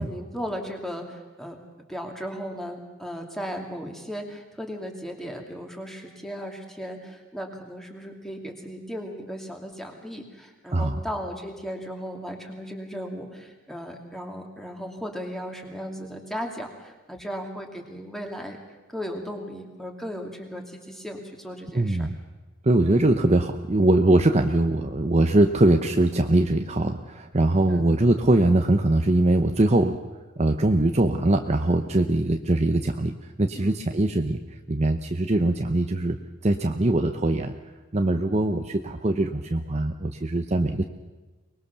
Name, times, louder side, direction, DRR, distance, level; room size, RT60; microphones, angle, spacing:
voice 1, 0.0-1.6 1.9-18.6 18.9-22.1 27.7-27.9 33.6-33.8, equal, ahead, 2 dB, 2.6 m, -36 dB
voice 2, 21.7-22.2 22.6-30.0 30.4-34.4 34.7-36.2 36.4-37.5 37.9-40.8, right 1 dB, 30° right, 5 dB, 0.8 m, -22 dB
24.0 x 20.5 x 6.9 m, 1.2 s
head